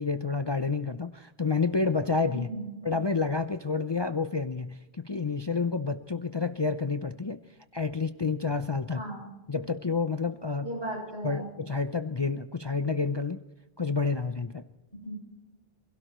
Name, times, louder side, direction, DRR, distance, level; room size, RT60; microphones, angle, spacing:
voice 1, 0.0-2.5 2.8-7.4 7.7-9.0 9.5-10.8 11.2-13.4 13.8-14.6, left 4 dB, 35° left, 9 dB, 0.4 m, -29 dB
voice 2, 2.3-2.8 8.9-9.3 10.6-11.5 15.0-15.1, right 1 dB, 80° right, -2 dB, 7.4 m, -36 dB
28.0 x 17.0 x 3.1 m, 1.1 s
omnidirectional pair, 1.1 m